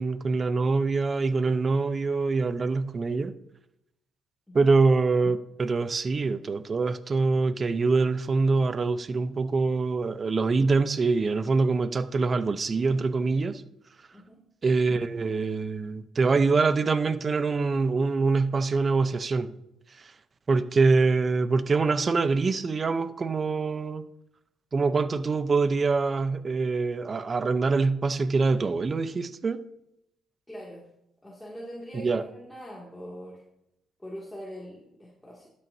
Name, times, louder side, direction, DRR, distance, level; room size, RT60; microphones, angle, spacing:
voice 1, 0.0-3.3 4.5-13.6 14.6-19.5 20.0-20.1 20.5-24.1 24.7-29.7 31.9-32.2, right 4 dB, 35° right, 0.7 m, -24 dB
voice 2, 30.5-30.9 31.2-33.4 34.0-35.5, equal, 10° left, 2.3 m, -42 dB
12.0 x 7.8 x 2.7 m
cardioid pair, 90°, 0 cm